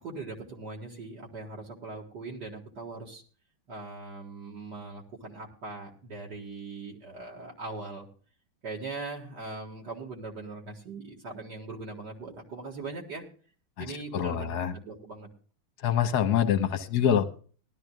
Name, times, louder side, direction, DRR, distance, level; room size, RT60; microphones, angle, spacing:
voice 1, 0.0-3.2 3.7-8.1 8.6-13.3 13.8-15.3, right 3 dB, 60° right, -2 dB, 2.3 m, -40 dB
voice 2, 14.1-14.7 15.8-17.4, left 9 dB, 60° left, 10 dB, 1.5 m, -25 dB
19.5 x 12.5 x 2.4 m, 0.41 s
omnidirectional pair, 2.2 m